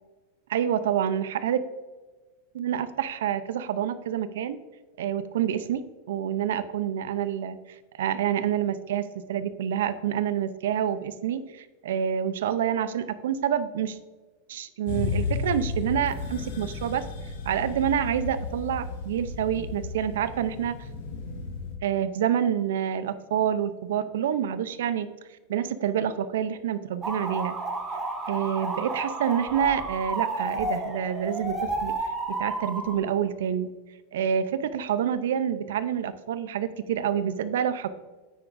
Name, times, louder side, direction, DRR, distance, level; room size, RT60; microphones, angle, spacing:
voice 1, 0.5-1.6 2.5-4.6 5.0-5.8 6.1-7.6 8.0-14.0 14.5-17.0 17.5-20.8 21.8-25.1 25.5-27.6 28.3-31.9 32.3-33.7 34.1-37.9, right 9 dB, 80° right, 13 dB, 0.6 m, -27 dB
sound 1, 14.9-21.8, left 4 dB, 65° left, 1.9 m, -33 dB
sound 2, 27.0-33.0, right 2 dB, 15° right, 1.1 m, -31 dB
9.4 x 8.7 x 2.6 m, 1.3 s
supercardioid pair, 160°, 0 cm